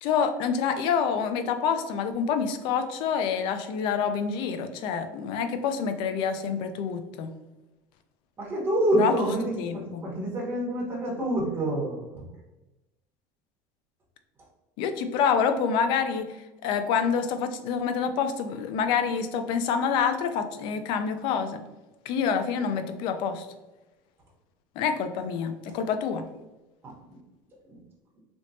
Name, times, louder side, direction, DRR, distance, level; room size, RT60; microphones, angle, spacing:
voice 1, 0.0-7.3 8.9-9.3 9.6-10.0 14.8-16.2 16.6-21.6 22.1-23.5 24.8-26.2, left 6 dB, 60° left, 8 dB, 0.4 m, -27 dB
voice 2, 8.4-12.2 26.8-26.9 27.7-27.8, right 1 dB, 25° right, -3 dB, 1.2 m, -27 dB
3.4 x 3.0 x 2.6 m, 1.0 s
cardioid pair, 135°, 9 cm